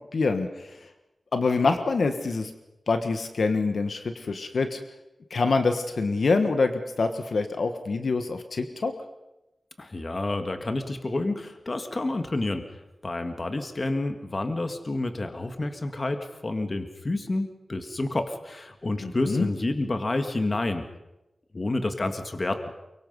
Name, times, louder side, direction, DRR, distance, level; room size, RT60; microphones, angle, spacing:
voice 1, 0.1-0.8 1.3-2.5 2.9-4.8 5.3-8.9 19.0-19.5, left 3 dB, 70° left, 7 dB, 1.4 m, -25 dB
voice 2, 9.8-12.7 13.0-20.9 21.5-22.7, left 2 dB, 40° left, 7 dB, 1.7 m, -29 dB
23.5 x 23.5 x 5.4 m, 0.95 s
wide cardioid pair, 100°, 0 cm